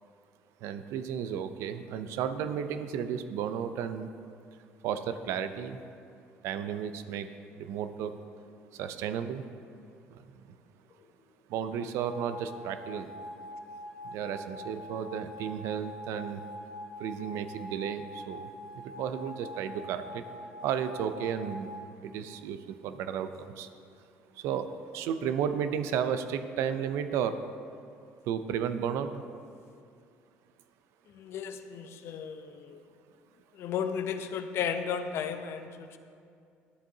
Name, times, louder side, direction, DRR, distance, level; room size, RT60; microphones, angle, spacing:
voice 1, 0.6-4.1 4.8-5.8 6.4-7.3 7.6-8.1 8.8-9.4 10.1-10.2 11.5-13.1 14.0-16.4 17.0-18.5 18.8-20.2 20.6-21.7 22.0-23.7 24.4-24.7 24.9-27.4 28.3-29.1, right 8 dB, 75° right, 10 dB, 0.4 m, -33 dB
sound 1, 12.0-21.7, left 1 dB, ahead, 2.1 m, -44 dB
voice 2, 31.1-32.8 33.6-36.0, left 7 dB, 60° left, 9 dB, 0.5 m, -34 dB
11.5 x 7.5 x 2.7 m, 2.4 s
cardioid pair, 95°, 5 cm